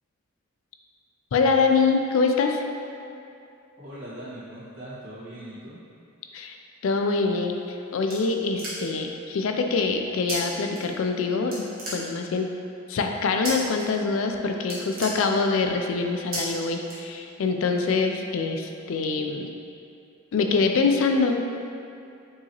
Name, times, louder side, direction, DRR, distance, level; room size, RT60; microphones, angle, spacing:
voice 1, 1.3-2.6 6.3-6.6 6.8-11.6 11.9-12.5 12.9-19.5 20.3-21.4, left 4 dB, 65° left, 4 dB, 0.3 m, -24 dB
voice 2, 3.8-5.8, right 1 dB, 70° right, -11 dB, 1.5 m, -40 dB
sound 1, 7.4-9.1 10.3-10.4 10.7-11.2 11.5-12.5 13.4-13.8 14.2-14.3 14.6-15.7 16.3-16.4 16.8-17.5, right 1 dB, 45° right, 1.1 m, -35 dB
4.6 x 2.9 x 2.9 m, 2.6 s
head